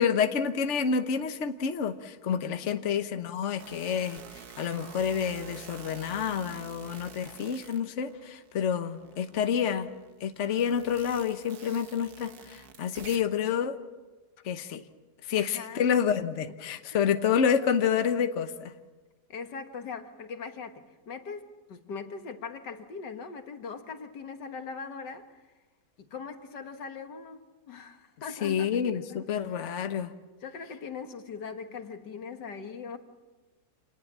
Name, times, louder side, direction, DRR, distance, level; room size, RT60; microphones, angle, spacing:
voice 1, 0.0-4.2 4.6-9.9 10.2-13.8 14.4-14.8 15.2-18.7 28.4-30.1, left 7 dB, 50° left, 8 dB, 1.3 m, -28 dB
sound 1, 3.6-8.6 8.9-13.4, right 7 dB, 65° right, 1.7 m, -48 dB
voice 2, 9.0-9.4 15.4-15.9 16.9-17.1 19.3-25.5 26.0-29.3 29.6-29.7 30.4-33.0, left 5 dB, 90° left, 7 dB, 2.2 m, -41 dB
27.5 x 19.5 x 7.5 m, 1.3 s
omnidirectional pair, 1.8 m